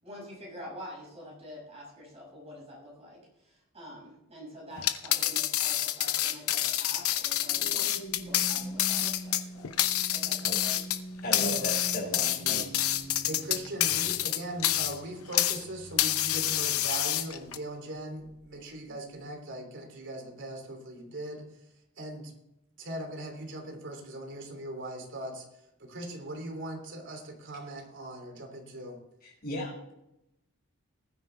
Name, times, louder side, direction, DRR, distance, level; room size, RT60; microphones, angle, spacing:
voice 1, 0.0-7.9 8.2-9.7 10.1-10.8, equal, 30° right, -4 dB, 6.2 m, -46 dB
sound 1, 4.8-15.6 16.0-17.6, left 13 dB, 80° left, 0.8 m, -28 dB
sound 2, 7.1-17.7 18.2-18.5, right 1 dB, 65° left, 2.6 m, -44 dB
voice 2, 11.2-12.7 29.2-29.9, equal, 45° left, -4 dB, 5.7 m, -36 dB
voice 3, 12.2-12.7 13.2-21.5 22.0-22.3 22.8-25.4 25.8-29.0, right 1 dB, 60° right, 2 dB, 3.2 m, -40 dB
20.0 x 9.7 x 3.5 m, 0.85 s
head